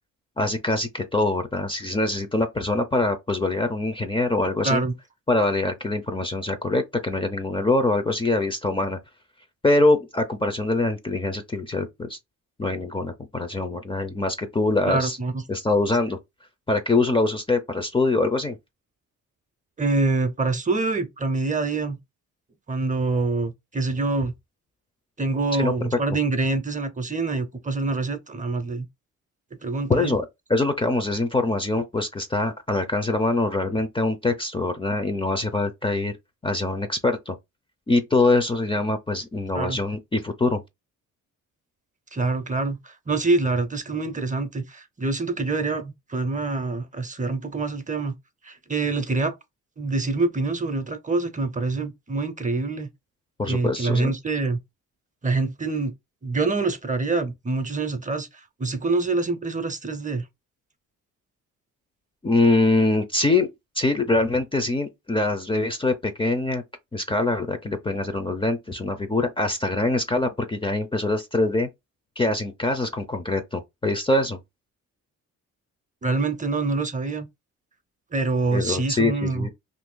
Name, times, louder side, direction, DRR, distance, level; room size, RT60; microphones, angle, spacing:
voice 1, 0.4-4.8 5.3-9.0 9.6-12.2 12.6-15.2 15.5-16.2 16.7-18.6 25.5-25.7 29.9-36.1 36.4-37.3 37.9-40.6 53.4-54.1 62.2-66.6 66.9-71.7 72.2-74.4 78.5-79.5, left 2 dB, 15° left, 0.6 m, -24 dB
voice 2, 14.9-15.4 19.8-22.0 22.7-24.3 25.2-28.9 29.6-30.1 39.5-39.8 42.1-48.1 48.4-49.3 49.8-52.9 53.5-54.6 55.2-55.9 56.2-58.3 58.6-60.2 76.0-77.3 78.1-79.5, right 3 dB, 25° right, 0.7 m, -25 dB
2.6 x 2.6 x 3.7 m
cardioid pair, 75°, 32 cm